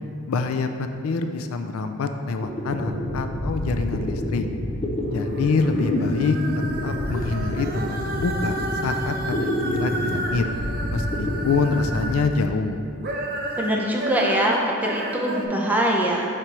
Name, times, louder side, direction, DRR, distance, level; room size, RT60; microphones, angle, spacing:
voice 1, 0.3-4.5 5.1-6.4 6.8-10.5 10.9-12.8, left 4 dB, 85° left, 7 dB, 0.4 m, -26 dB
sound 1, 2.4-12.9, left 1 dB, 30° left, 0.6 m, -28 dB
sound 2, 5.0-12.5 12.9-15.4, right 1 dB, 50° right, 0.7 m, -32 dB
voice 2, 13.6-16.4, right 1 dB, 10° right, -2 dB, 0.6 m, -23 dB
5.2 x 4.3 x 4.7 m, 2.3 s
head